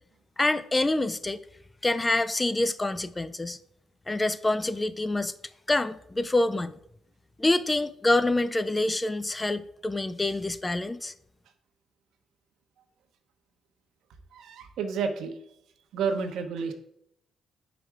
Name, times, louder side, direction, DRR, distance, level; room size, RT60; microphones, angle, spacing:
voice 1, 0.4-1.4 1.8-3.6 4.1-5.3 5.7-6.7 7.4-11.1, left 2 dB, 15° left, 13 dB, 0.3 m, -26 dB
voice 2, 14.3-15.4 15.9-16.7, right 5 dB, 80° right, 6 dB, 0.9 m, -30 dB
5.2 x 5.0 x 4.7 m, 0.75 s
cardioid pair, 90°, 0 cm